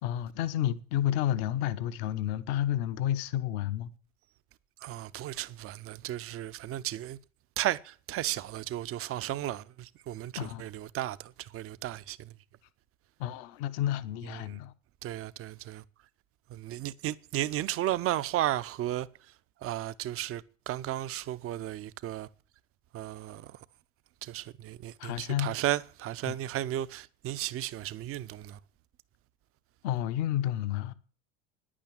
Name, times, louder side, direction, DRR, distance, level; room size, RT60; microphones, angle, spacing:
voice 1, 0.0-3.9 10.4-10.6 13.2-14.7 25.0-25.5 26.3-26.4 29.8-30.9, left 12 dB, 55° left, 1.1 m, -30 dB
voice 2, 4.8-7.2 7.6-12.3 14.2-14.6 15.0-15.8 16.5-19.1 19.6-22.3 22.9-23.5 24.2-28.6, right 13 dB, 35° right, 0.7 m, -34 dB
10.5 x 8.8 x 8.7 m
hypercardioid pair, 80°, 39 cm